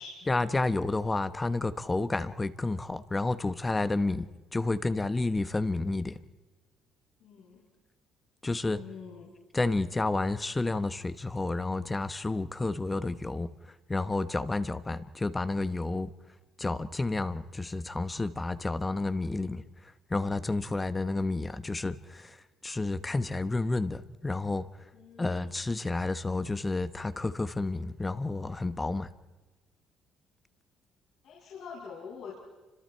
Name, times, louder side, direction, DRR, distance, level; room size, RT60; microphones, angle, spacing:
voice 1, 0.3-6.2 8.4-8.8 9.5-13.5 13.9-16.1 16.6-19.6 20.1-22.4 22.6-24.7 25.2-29.1, left 2 dB, 15° left, 13 dB, 0.9 m, -30 dB
voice 2, 7.2-7.7 8.6-9.3 24.9-25.5 31.2-32.3, left 6 dB, 70° left, -8 dB, 7.2 m, -45 dB
30.0 x 26.0 x 4.6 m, 1.2 s
cardioid pair, 105°, 0 cm